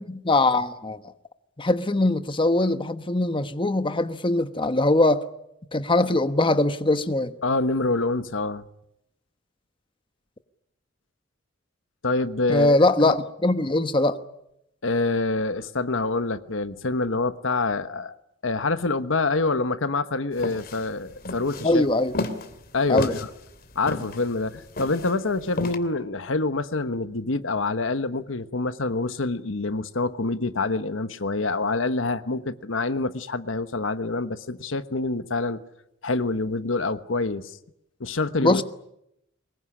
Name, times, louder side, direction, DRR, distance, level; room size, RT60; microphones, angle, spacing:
voice 1, 0.1-1.0 1.6-5.2 5.7-7.3 12.5-14.2 21.6-22.1 22.9-23.2 38.4-38.6, left 2 dB, 25° left, 1.1 m, -21 dB
voice 2, 7.4-8.6 12.0-12.8 13.0-13.1 14.8-18.1 18.4-21.9 22.7-23.3 23.7-35.6 36.0-37.6 38.0-38.6, left 3 dB, 80° left, 1.2 m, -26 dB
sound 1, 20.4-25.8, left 2 dB, 50° left, 2.7 m, -32 dB
24.0 x 21.0 x 9.9 m
head